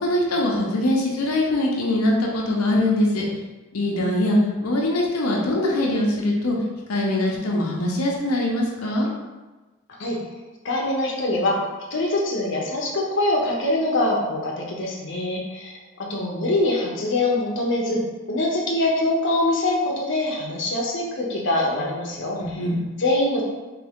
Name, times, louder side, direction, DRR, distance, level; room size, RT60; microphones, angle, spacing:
voice 1, 0.0-3.2 3.7-6.6 6.9-9.1 15.1-15.6 22.4-22.9, left 1 dB, 90° left, -3 dB, 0.8 m, -22 dB
voice 2, 10.6-11.6 11.9-15.7 16.0-18.0 18.3-22.6 23.0-23.4, left 2 dB, 55° left, -2 dB, 0.8 m, -23 dB
3.5 x 3.2 x 3.6 m, 1.2 s
head